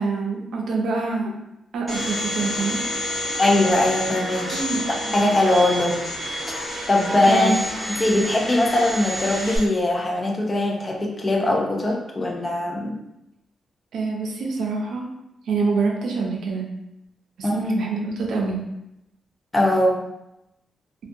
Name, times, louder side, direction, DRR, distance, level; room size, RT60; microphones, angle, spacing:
voice 1, 0.0-1.3 1.7-2.8 4.5-4.8 7.3-7.6 13.9-15.1 15.5-16.7 17.4-18.6, right 3 dB, 85° right, 0 dB, 0.5 m, -25 dB
Domestic sounds home sounds, 1.9-9.6, equal, 15° right, 0.7 m, -29 dB
voice 2, 3.4-4.6 5.1-6.0 6.9-7.6 8.0-13.0 17.4-17.6 19.5-20.1, left 1 dB, 20° left, 0 dB, 0.3 m, -21 dB
2.6 x 2.2 x 2.5 m, 0.86 s
wide cardioid pair, 175°, 0 cm